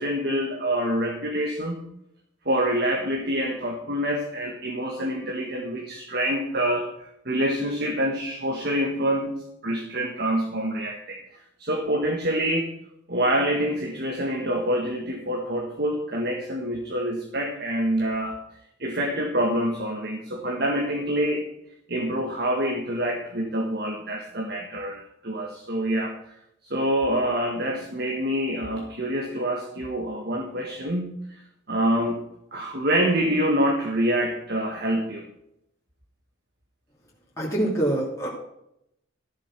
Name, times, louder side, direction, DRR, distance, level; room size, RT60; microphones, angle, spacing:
voice 1, 0.0-1.8 2.4-12.7 13.1-18.4 18.8-21.4 21.9-26.1 26.6-31.4 31.7-32.2 32.5-35.3, equal, 55° right, 2 dB, 1.7 m, -26 dB
voice 2, 37.4-38.3, right 1 dB, 15° left, -5 dB, 2.9 m, -25 dB
14.0 x 7.3 x 6.1 m, 0.77 s
head